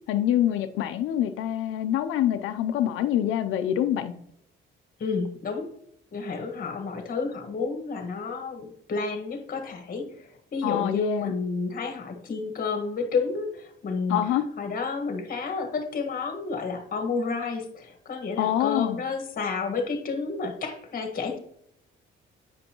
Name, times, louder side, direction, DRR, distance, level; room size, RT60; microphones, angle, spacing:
voice 1, 0.1-4.1 10.6-11.3 14.1-14.5 18.4-19.0, left 11 dB, 90° left, 9 dB, 0.5 m, -25 dB
voice 2, 5.0-5.7 6.1-10.2 10.5-14.2 14.6-21.4, left 4 dB, 45° left, 6 dB, 1.5 m, -30 dB
8.6 x 5.2 x 2.9 m, 0.71 s
cardioid pair, 90°, 20 cm